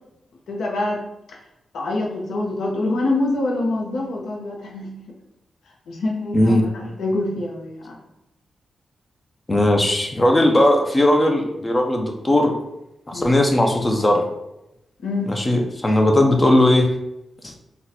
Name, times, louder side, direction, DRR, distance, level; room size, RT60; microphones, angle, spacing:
voice 1, 0.5-1.0 1.3-1.4 1.7-5.2 5.9-8.0 13.1-13.4 15.0-15.4, left 2 dB, 85° left, 0 dB, 0.6 m, -25 dB
voice 2, 9.5-12.5 13.1-14.2 15.3-16.9 17.4-17.5, left 1 dB, 15° left, 2 dB, 0.4 m, -17 dB
2.7 x 2.2 x 4.0 m, 0.87 s
wide cardioid pair, 160°, 0 cm